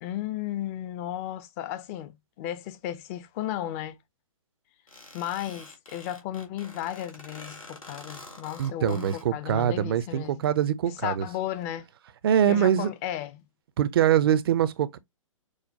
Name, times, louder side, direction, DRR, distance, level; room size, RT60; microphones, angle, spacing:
voice 1, 0.0-2.1 2.4-4.0 5.1-10.4 10.8-11.9 12.5-13.4, left 12 dB, 25° left, 0.5 m, -34 dB
sound 1, 4.9-9.2, left 2 dB, 80° left, 1.9 m, -46 dB
voice 2, 8.6-11.3 12.2-12.9 13.8-15.0, right 10 dB, 45° right, 0.5 m, -23 dB
6.2 x 2.2 x 2.6 m
figure-of-eight pair, 125°, 17 cm